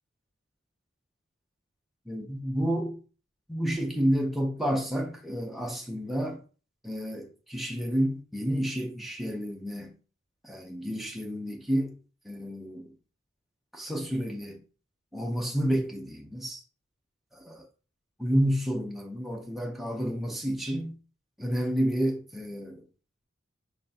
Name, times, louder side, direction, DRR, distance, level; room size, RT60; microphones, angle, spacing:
voice 1, 2.1-3.0 3.5-6.4 6.8-9.9 10.4-12.0 12.2-12.9 13.7-14.6 15.1-16.6 17.3-17.7 18.2-21.0 21.4-22.8, equal, ahead, 0.6 m, -30 dB
4.4 x 3.3 x 2.7 m
head